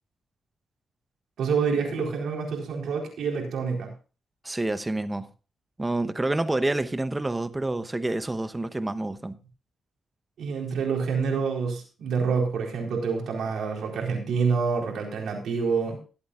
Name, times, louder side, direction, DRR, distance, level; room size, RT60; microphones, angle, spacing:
voice 1, 1.4-3.9 10.4-16.0, right 5 dB, 85° right, 4.2 m, -27 dB
voice 2, 4.4-5.3 5.8-9.4, right 2 dB, 20° right, 0.9 m, -28 dB
21.0 x 8.6 x 2.4 m
cardioid pair, 80°, 0 cm